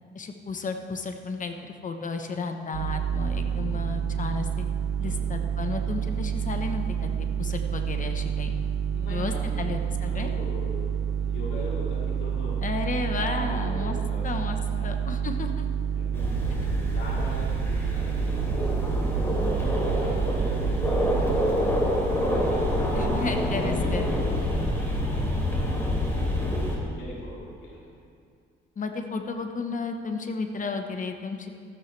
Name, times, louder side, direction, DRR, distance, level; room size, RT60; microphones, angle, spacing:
voice 1, 0.1-4.6 5.0-8.6 9.1-10.3 12.6-14.0 14.2-14.6 14.8-15.7 22.9-24.2 28.8-31.5, left 4 dB, 40° left, 5 dB, 1.2 m, -33 dB
sound 1, 2.7-21.4, right 8 dB, 90° right, 0.7 m, -29 dB
voice 2, 3.1-3.8 5.0-5.4 5.9-6.0 8.9-9.7 10.0-12.6 13.1-14.2 14.8-14.9 15.9-19.0 19.9-22.2 22.9-25.4 26.0-26.6 27.0-27.9, left 1 dB, 80° left, -6 dB, 3.8 m, -40 dB
sound 2, 16.1-26.8, left 1 dB, 10° left, 3.4 m, -27 dB
14.0 x 13.0 x 3.4 m, 2.2 s
cardioid pair, 90°, 20 cm